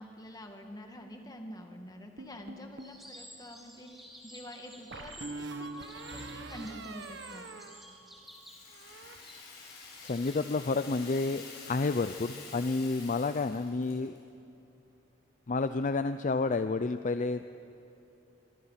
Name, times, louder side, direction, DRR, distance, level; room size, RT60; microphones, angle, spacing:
voice 1, 0.0-7.5, equal, 20° left, 3 dB, 2.2 m, -47 dB
sound 1, 2.2-3.0 4.9-8.4 8.7-9.2, right 2 dB, 65° right, 1.3 m, -44 dB
sound 2, 2.8-10.4, equal, ahead, 3.2 m, -53 dB
Rattle (instrument), 8.2-14.2, left 4 dB, 60° left, 6.8 m, -48 dB
voice 2, 10.0-14.2 15.5-17.4, left 3 dB, 40° left, 11 dB, 0.5 m, -30 dB
25.5 x 24.5 x 5.9 m, 2.7 s
head